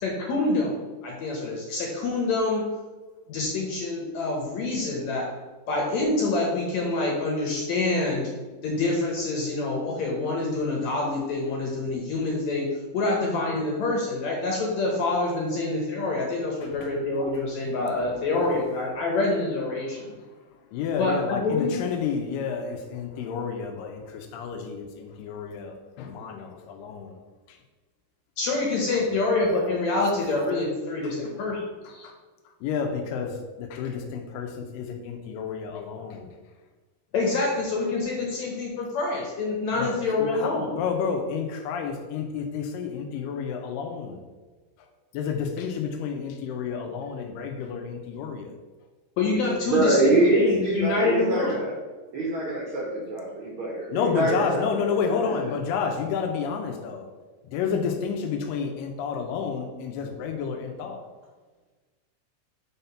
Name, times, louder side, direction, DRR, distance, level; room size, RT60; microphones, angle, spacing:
voice 1, 0.0-0.8 1.0-2.7 3.3-5.3 5.7-8.3 8.6-20.2 21.0-21.8 28.4-32.0 37.1-40.7 49.2-51.6, left 3 dB, 70° left, -1 dB, 1.9 m, -26 dB
voice 2, 16.6-16.9 18.1-18.5 20.7-27.2 27.5-27.6 32.0-32.2 32.6-36.3 39.8-44.2 45.1-48.6 53.9-57.1 57.4-61.1, left 6 dB, 85° left, 4 dB, 2.3 m, -30 dB
voice 3, 49.7-51.7 52.1-55.4, right 2 dB, 60° right, -4 dB, 1.4 m, -24 dB
5.7 x 3.8 x 5.6 m, 1.3 s
omnidirectional pair, 4.0 m